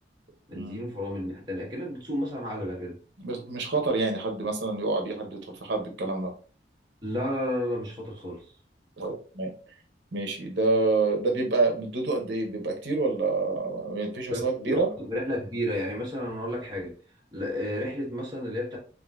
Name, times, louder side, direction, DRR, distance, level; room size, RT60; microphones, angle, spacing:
voice 1, 0.5-3.0 7.0-8.5 14.3-16.9 17.3-18.8, left 1 dB, 25° right, 1.0 m, -32 dB
voice 2, 3.2-6.3 9.0-9.5 10.1-14.9, right 3 dB, 80° right, 0.7 m, -27 dB
3.6 x 2.5 x 2.3 m
head